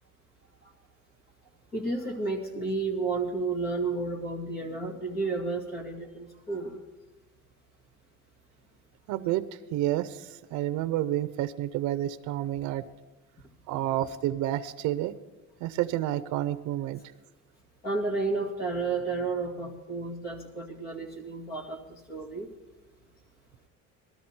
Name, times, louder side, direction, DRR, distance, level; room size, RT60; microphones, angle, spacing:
voice 1, 1.7-6.8 17.8-22.5, right 3 dB, 30° left, 2 dB, 2.2 m, -32 dB
voice 2, 9.1-12.8 13.7-15.1 15.6-17.0, right 13 dB, 75° right, 13 dB, 0.6 m, -30 dB
19.5 x 13.0 x 4.4 m, 1.1 s
cardioid pair, 165°, 29 cm